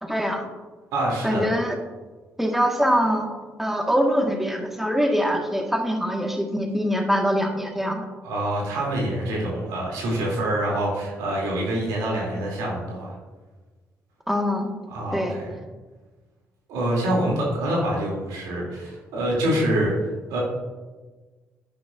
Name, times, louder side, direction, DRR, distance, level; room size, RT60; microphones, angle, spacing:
voice 1, 0.0-0.5 1.2-1.8 2.4-3.3 3.6-8.1 14.3-14.7 15.1-15.4, equal, 5° right, 2 dB, 1.6 m, -23 dB
voice 2, 0.9-1.4 8.2-13.1 14.9-15.5 16.7-19.9 20.3-20.4, right 1 dB, 80° right, -3 dB, 2.9 m, -25 dB
10.0 x 8.8 x 2.6 m, 1.3 s
hypercardioid pair, 50°, 6 cm